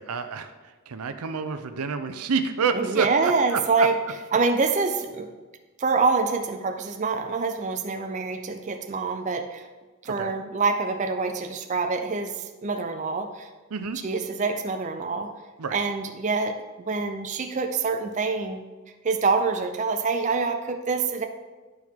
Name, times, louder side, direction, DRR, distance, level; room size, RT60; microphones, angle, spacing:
voice 1, 0.0-3.9 10.0-10.3 13.7-14.0 15.6-15.8, right 5 dB, 85° right, 9 dB, 0.6 m, -29 dB
voice 2, 2.7-4.0 4.3-5.3 5.8-9.7 10.0-13.5 14.0-15.3 15.7-18.6 19.0-21.2, right 4 dB, 35° right, 5 dB, 0.4 m, -26 dB
11.0 x 4.6 x 3.6 m, 1.3 s
head